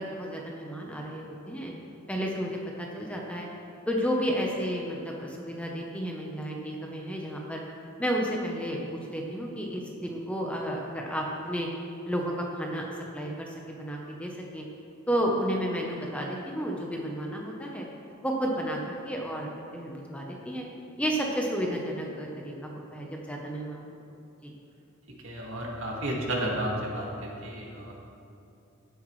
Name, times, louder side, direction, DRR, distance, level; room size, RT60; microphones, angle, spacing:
voice 1, 0.0-1.7 2.1-3.5 3.9-7.6 8.0-11.7 12.1-12.9 13.1-14.7 15.1-17.9 18.2-20.6 21.0-24.0 24.4-24.5, equal, 5° left, -1 dB, 0.9 m, -32 dB
voice 2, 25.2-27.9, right 1 dB, 65° right, -2 dB, 2.0 m, -32 dB
15.5 x 8.0 x 3.2 m, 2.7 s
head